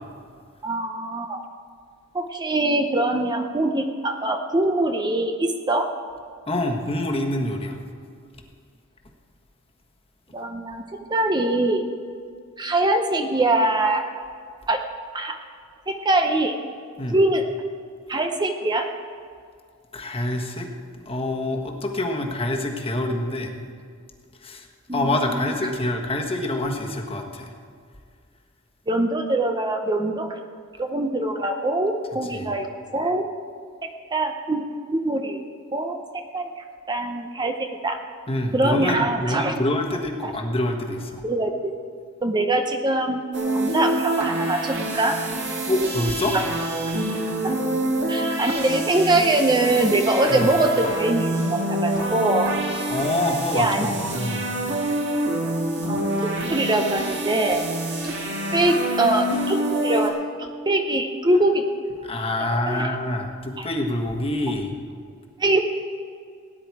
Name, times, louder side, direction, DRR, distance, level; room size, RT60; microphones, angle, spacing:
voice 1, 0.6-1.4 2.1-5.9 10.3-10.8 11.1-11.8 12.6-14.0 14.7-14.8 15.1-15.4 15.9-16.5 17.1-17.4 18.1-18.9 24.9-25.1 25.6-25.7 28.9-30.4 30.8-32.7 32.9-33.2 34.1-34.6 34.9-35.4 35.7-36.0 36.3-36.5 36.9-38.0 38.5-39.5 41.2-41.5 42.2-43.2 43.5-45.2 46.3-46.4 48.1-52.5 53.5-53.9 55.9-57.7 58.0-58.1 58.5-60.1 60.4-61.6 62.7-62.9 63.6-63.7 65.4-65.6, right 2 dB, 20° right, 4 dB, 0.7 m, -23 dB
voice 2, 6.5-7.8 17.0-17.2 19.9-20.7 21.0-23.5 24.4-24.7 24.9-27.5 32.2-32.5 38.3-41.2 45.6-46.4 50.3-50.5 52.9-54.4 55.9-56.0 62.0-64.8, left 1 dB, 30° left, 2 dB, 1.4 m, -26 dB
sound 1, 43.3-60.1, right 1 dB, 60° right, 2.3 m, -26 dB
18.0 x 9.9 x 4.8 m, 2.2 s
head